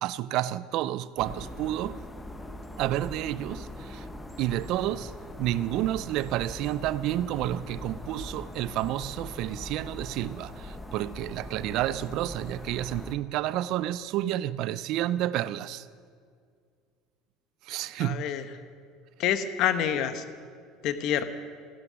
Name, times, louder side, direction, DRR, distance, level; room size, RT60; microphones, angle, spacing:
voice 1, 0.0-2.0 2.8-4.1 4.4-5.1 5.4-15.9 17.6-18.4, right 13 dB, 60° right, 0.5 m, -30 dB
sound 1, 1.2-13.2, left 1 dB, 10° left, 1.1 m, -41 dB
voice 2, 18.0-18.4 19.2-20.2 20.8-21.3, left 9 dB, 55° left, 1.0 m, -27 dB
16.0 x 11.0 x 6.3 m
supercardioid pair, 125°, 0 cm